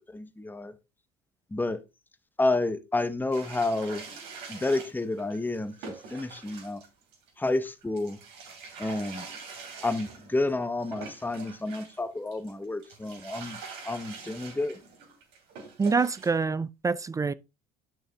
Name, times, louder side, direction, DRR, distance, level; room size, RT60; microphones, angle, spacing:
voice 1, 0.1-0.7 1.5-1.8 2.4-4.0 4.5-6.8 7.4-8.2 8.8-9.3 9.8-13.6 13.8-14.8, left 2 dB, 10° left, 0.8 m, -30 dB
sound 1, 3.3-12.0 12.3-16.4, right 5 dB, 65° right, 2.8 m, -44 dB
voice 2, 15.8-17.3, right 4 dB, 15° right, 0.4 m, -26 dB
11.0 x 6.2 x 2.2 m
hypercardioid pair, 75°, 19 cm